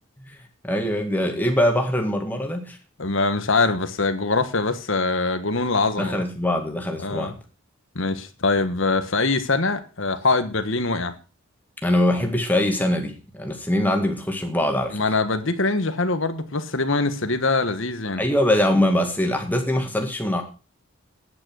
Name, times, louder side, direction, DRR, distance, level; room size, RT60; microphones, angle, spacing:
voice 1, 0.6-2.8 6.0-7.4 11.8-15.0 18.2-20.4, left 1 dB, 10° left, 3 dB, 2.0 m, -22 dB
voice 2, 3.0-6.2 7.0-7.3 7.9-11.1 14.9-18.2, left 3 dB, 60° left, 10 dB, 1.4 m, -23 dB
9.7 x 9.0 x 6.3 m, 0.35 s
head